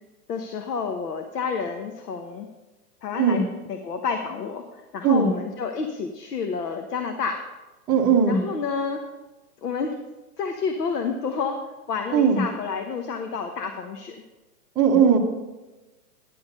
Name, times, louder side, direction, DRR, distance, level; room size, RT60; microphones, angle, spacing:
voice 1, 0.3-2.5 3.0-3.4 3.7-7.4 8.3-9.0 9.6-9.9 10.4-11.6 11.9-14.2, left 5 dB, 90° left, 5 dB, 1.1 m, -29 dB
voice 2, 7.9-8.4 12.1-12.4 14.8-15.2, right 6 dB, 10° right, -5 dB, 0.7 m, -18 dB
10.5 x 6.3 x 5.3 m, 1.1 s
hypercardioid pair, 150°, 46 cm